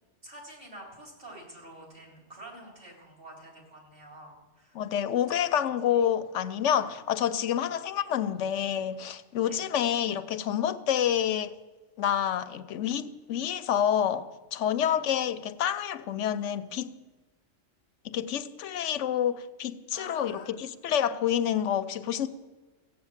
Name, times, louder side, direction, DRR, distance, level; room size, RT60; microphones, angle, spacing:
voice 1, 0.2-4.8 5.3-5.7 7.6-7.7 9.4-9.6 14.9-15.0 19.9-20.5, right 1 dB, 50° right, 3.7 m, -48 dB
voice 2, 4.7-11.5 12.0-17.0 18.0-22.3, left 9 dB, 90° left, 1.0 m, -28 dB
15.5 x 8.7 x 7.3 m
omnidirectional pair, 1.2 m